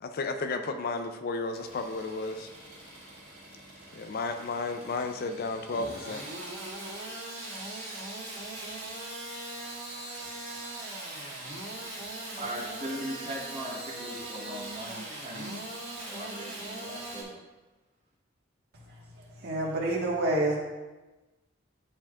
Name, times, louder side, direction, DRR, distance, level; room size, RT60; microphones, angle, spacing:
voice 1, 0.0-2.5 3.9-6.2, left 3 dB, 50° left, 7 dB, 0.4 m, -33 dB
Engine starting / Sawing, 1.4-17.2, right 2 dB, 70° right, 2.0 m, -41 dB
voice 2, 12.4-15.6 16.1-17.4, equal, 35° right, -1 dB, 1.2 m, -39 dB
voice 3, 19.4-20.6, right 1 dB, 55° right, -3 dB, 1.5 m, -27 dB
10.0 x 4.3 x 2.4 m, 1.1 s
head